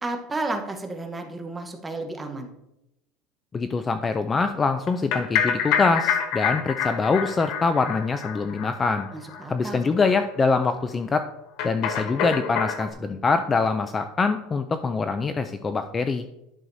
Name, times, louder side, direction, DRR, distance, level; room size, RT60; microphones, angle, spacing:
voice 1, 0.0-2.5 9.1-10.0, right 2 dB, 10° right, 4 dB, 0.9 m, -32 dB
voice 2, 3.5-9.1 9.5-11.3 11.6-16.3, left 4 dB, 15° left, 9 dB, 0.3 m, -24 dB
sound 1, 4.9-9.4 9.7-9.8 10.1-10.2 10.4-10.5 11.6-12.9, left 7 dB, 55° left, 0.9 m, -27 dB
10.5 x 6.3 x 2.6 m, 0.86 s
cardioid pair, 160°, 0 cm